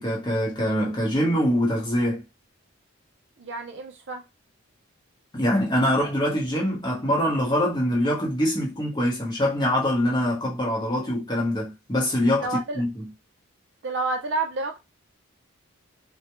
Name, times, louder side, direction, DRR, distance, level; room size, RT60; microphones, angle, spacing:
voice 1, 0.0-2.2 5.3-13.1, equal, 20° left, 0.8 m, -24 dB
voice 2, 3.4-4.2 12.4-12.8 13.8-14.8, right 3 dB, 55° right, 0.5 m, -29 dB
2.2 x 2.1 x 2.9 m
head